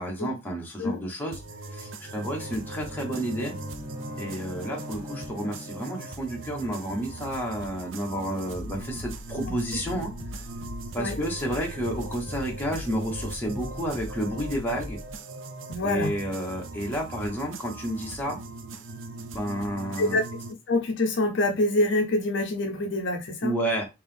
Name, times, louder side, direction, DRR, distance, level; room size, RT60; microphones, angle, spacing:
voice 1, 0.0-1.4 1.7-3.5 4.2-10.1 10.9-15.0 15.8-18.4 19.3-20.2 23.4-23.9, equal, 10° left, 1.1 m, -31 dB
sound 1, 1.3-20.5, right 3 dB, 65° right, 0.5 m, -40 dB
Bowed string instrument, 1.7-6.5, left 1 dB, 25° right, 0.6 m, -43 dB
sound 2, 6.6-15.2, left 1 dB, 30° left, 0.9 m, -41 dB
voice 2, 15.7-16.1 20.0-20.2 20.7-23.5, left 2 dB, 60° left, 0.5 m, -25 dB
3.4 x 2.9 x 3.5 m
head